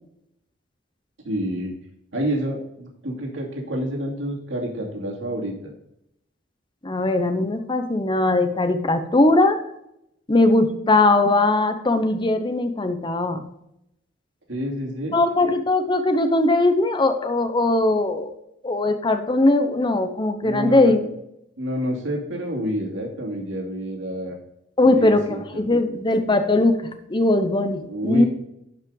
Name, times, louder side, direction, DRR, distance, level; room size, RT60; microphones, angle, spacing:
voice 1, 1.2-1.7 2.1-5.7 14.5-15.2 20.4-21.1 21.6-24.4 24.8-25.7 27.8-28.3, right 1 dB, 80° right, -1 dB, 2.6 m, -28 dB
voice 2, 6.8-9.6 10.3-13.5 15.1-18.3 18.6-21.0 24.8-26.8 27.1-28.3, left 2 dB, 25° left, 9 dB, 0.8 m, -20 dB
11.5 x 5.6 x 3.8 m, 0.80 s
head